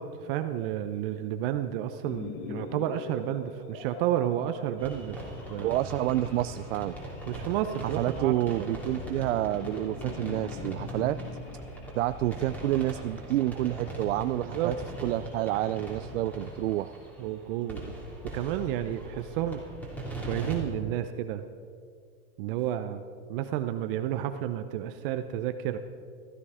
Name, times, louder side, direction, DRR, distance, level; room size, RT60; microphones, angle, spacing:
voice 1, 0.0-5.7 7.3-8.4 11.0-11.1 14.4-14.7 17.2-18.0 18.2-19.6 20.3-21.4 22.4-23.0 23.3-25.8, right 11 dB, 45° right, 9 dB, 0.7 m, -31 dB
sound 1, 2.0-14.2, left 5 dB, 45° left, 1.3 m, -44 dB
sound 2, 4.8-20.6, right 1 dB, 5° left, 3.0 m, -40 dB
voice 2, 5.6-7.0 7.8-11.2 11.9-14.8 15.0-16.9, right 15 dB, 80° right, 12 dB, 0.5 m, -29 dB
15.5 x 13.5 x 4.9 m, 2.2 s
supercardioid pair, 140°, 38 cm